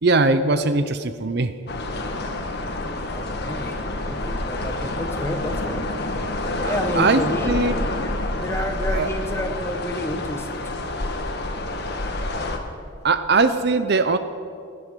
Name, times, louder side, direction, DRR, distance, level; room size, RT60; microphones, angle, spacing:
voice 1, 0.0-1.5 6.6-7.7 8.5-8.6 8.9-9.1 13.0-14.2, right 3 dB, 50° right, 11 dB, 0.6 m, -20 dB
sound 1, 1.7-12.6, left 2 dB, 50° left, 1.5 m, -28 dB
voice 2, 3.1-5.9 6.6-7.6 8.0-8.1 8.4-10.8, left 1 dB, 10° left, 5 dB, 1.2 m, -30 dB
16.5 x 11.5 x 6.8 m, 2.3 s
head